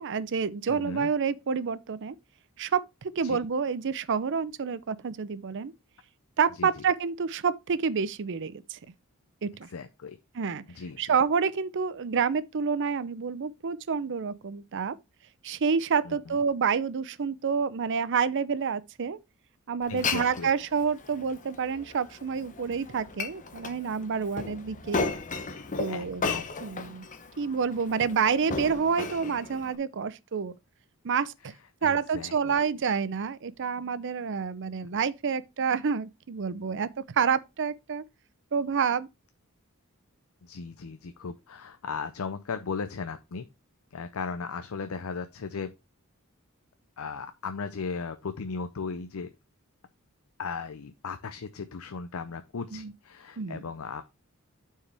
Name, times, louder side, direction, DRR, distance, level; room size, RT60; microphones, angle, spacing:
voice 1, 0.0-2.2 2.6-5.7 6.4-8.8 9.4-9.7 10.3-10.6 11.0-14.9 15.4-19.2 19.7-25.1 25.8-26.3 26.6-27.0 27.4-30.5 31.0-31.5 31.8-36.9 37.1-38.0 38.5-39.1 52.7-52.9 53.4-53.6, right 6 dB, 60° right, 0.5 m, -28 dB
voice 2, 0.7-1.1 3.2-3.4 6.6-6.8 9.7-10.2 10.7-11.2 16.0-16.4 19.9-20.5 25.9-26.5 31.8-32.6 40.4-43.4 43.9-45.7 47.0-49.3 50.4-54.0, left 5 dB, 70° left, 0.6 m, -37 dB
Glass, 19.8-29.7, left 4 dB, 35° left, 0.8 m, -35 dB
9.9 x 4.7 x 3.4 m
head